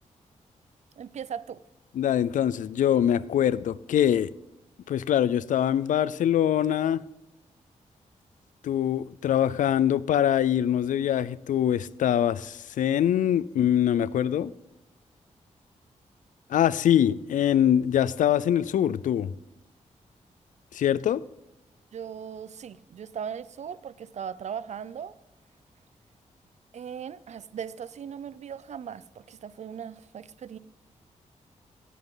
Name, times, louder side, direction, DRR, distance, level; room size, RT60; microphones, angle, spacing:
voice 1, 1.0-1.6 21.9-25.1 26.7-30.6, right 8 dB, 60° right, 0.5 m, -38 dB
voice 2, 2.0-4.3 4.9-7.0 8.6-14.5 16.5-19.3 20.7-21.2, left 10 dB, 90° left, 0.4 m, -23 dB
15.5 x 9.3 x 3.9 m
cardioid pair, 95°, 13 cm